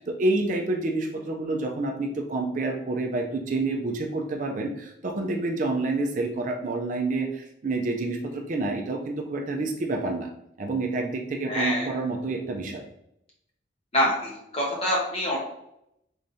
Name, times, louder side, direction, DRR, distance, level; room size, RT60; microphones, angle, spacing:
voice 1, 0.0-10.3 10.6-12.8, right 2 dB, 40° right, 2 dB, 0.4 m, -28 dB
voice 2, 11.5-11.9 13.9-15.4, equal, 30° left, -3 dB, 1.1 m, -26 dB
3.8 x 3.4 x 2.6 m, 0.79 s
head